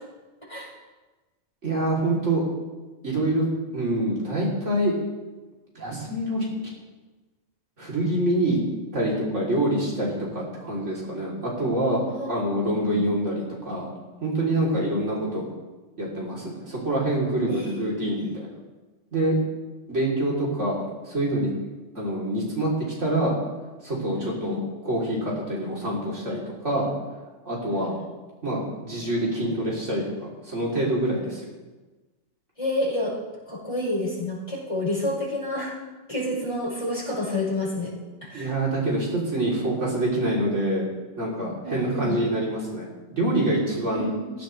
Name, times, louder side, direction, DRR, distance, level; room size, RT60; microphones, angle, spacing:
voice 1, 1.6-2.4 3.0-3.5 3.7-4.9 5.8-6.6 7.8-8.6 8.9-13.9 14.2-15.4 16.0-18.5 19.1-19.4 19.9-21.5 22.0-22.7 23.0-23.3 23.8-24.6 24.8-26.9 27.5-28.0 28.4-30.0 30.4-31.4 38.3-40.9 41.2-44.1, right 1 dB, 65° right, -5 dB, 4.0 m, -26 dB
voice 2, 12.6-13.1 17.5-18.3 24.2-24.6 27.7-27.9 32.6-33.2 33.5-35.7 36.1-37.9 38.2-38.5 41.6-42.2 43.9-44.3, left 1 dB, 25° left, -7 dB, 5.8 m, -29 dB
18.0 x 15.5 x 3.4 m, 1.2 s
omnidirectional pair, 1.3 m